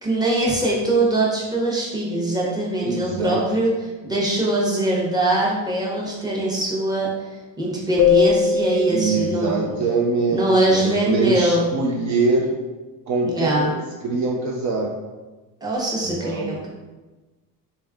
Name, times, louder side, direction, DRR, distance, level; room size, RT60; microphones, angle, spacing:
voice 1, 0.0-3.7 4.0-7.1 7.6-9.7 10.3-11.7 13.3-13.7 15.6-16.7, right 1 dB, 10° right, -4 dB, 0.8 m, -22 dB
voice 2, 2.8-3.4 8.9-12.5 13.1-13.7 14.0-14.9 16.0-16.6, right 3 dB, 50° right, -1 dB, 0.5 m, -23 dB
Keyboard (musical), 8.0-10.7, left 5 dB, 50° left, 0.5 m, -22 dB
3.5 x 2.3 x 3.5 m, 1.2 s
cardioid pair, 140°, 38 cm